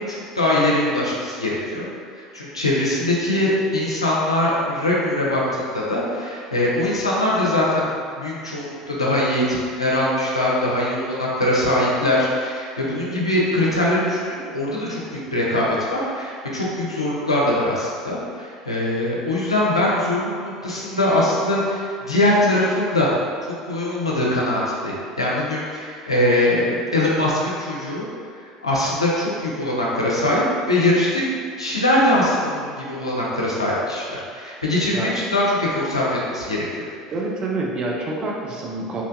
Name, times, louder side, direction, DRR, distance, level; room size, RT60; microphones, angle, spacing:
voice 1, 0.1-1.9 2.1-23.1 23.7-24.9 25.2-28.1 28.6-31.2 31.6-36.9, left 1 dB, 85° left, -5 dB, 0.4 m, -22 dB
voice 2, 37.1-39.0, right 2 dB, 35° right, -2 dB, 0.5 m, -27 dB
2.7 x 2.2 x 2.6 m, 2.1 s
figure-of-eight pair, 70°, 3 cm